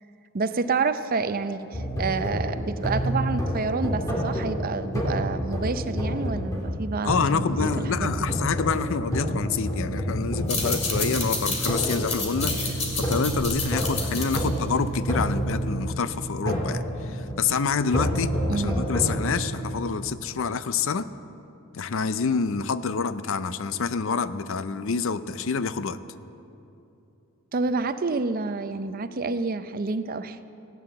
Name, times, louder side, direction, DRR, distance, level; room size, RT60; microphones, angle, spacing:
voice 1, 0.3-8.3 18.5-18.9 27.5-30.5, right 4 dB, 40° right, 11 dB, 0.5 m, -29 dB
sound 1, 1.7-19.6, equal, 15° left, 2.3 m, -29 dB
voice 2, 7.0-21.1 21.7-26.0, left 5 dB, 60° left, 14 dB, 0.5 m, -27 dB
sound 2, 10.4-15.5, left 3 dB, 30° left, 2.2 m, -30 dB
16.5 x 9.3 x 7.7 m, 2.8 s
head